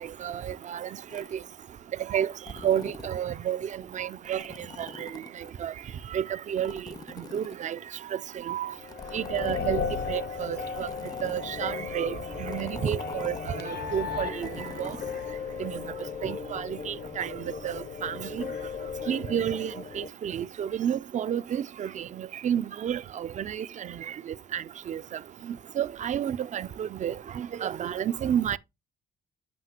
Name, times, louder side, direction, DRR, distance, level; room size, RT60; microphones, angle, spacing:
voice 1, 0.2-1.2 2.1-2.3 2.6-4.4 4.8-5.1 5.6-5.7 6.1-6.8 7.3-7.8 8.1-8.2 8.4-8.7 9.1-10.9 11.2-15.0 15.6-15.8 16.2-18.4 19.1-24.0 24.3-25.0 25.8-28.6, right 9 dB, 40° right, 0.4 m, -31 dB
sound 1, 1.1-1.5 2.3-3.3 4.2-5.6 6.6-8.0 8.7-10.0 10.7-11.7 12.5-13.6 14.3-15.3 16.0-16.1, left 4 dB, 20° left, 0.5 m, -46 dB
sound 2, 8.7-20.1, left 6 dB, 55° left, 0.8 m, -36 dB
7.7 x 5.5 x 2.8 m
cardioid pair, 90°, 20 cm